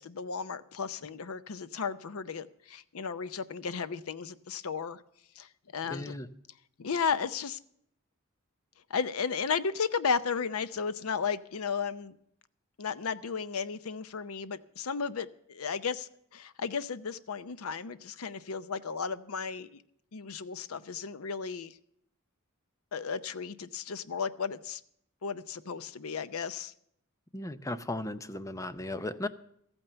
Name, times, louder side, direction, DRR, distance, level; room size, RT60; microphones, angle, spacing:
voice 1, 0.0-5.0 5.4-6.1 6.8-7.6 8.9-12.2 12.8-19.8 20.1-21.8 22.9-24.8 25.2-26.7, left 5 dB, 85° left, 14 dB, 0.6 m, -34 dB
voice 2, 5.9-6.3 27.3-29.3, left 2 dB, 15° left, 12 dB, 0.6 m, -36 dB
14.0 x 8.9 x 6.9 m, 0.69 s
head